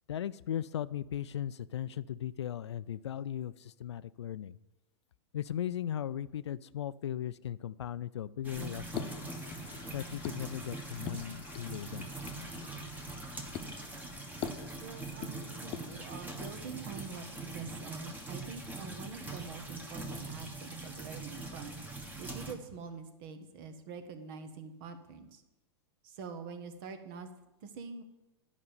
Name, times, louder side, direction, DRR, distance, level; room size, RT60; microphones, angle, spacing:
voice 1, 0.1-4.6 5.3-9.1 9.9-12.1, left 10 dB, 85° left, 17 dB, 0.4 m, -37 dB
sound 1, 8.4-22.5, right 2 dB, 10° right, 1.4 m, -43 dB
sound 2, 8.9-17.6, left 8 dB, 40° left, 0.9 m, -46 dB
voice 2, 14.8-25.4 26.0-27.3 27.6-28.0, right 5 dB, 55° right, 8 dB, 1.3 m, -45 dB
9.9 x 5.3 x 7.0 m, 1.0 s
hypercardioid pair, 105°, 14 cm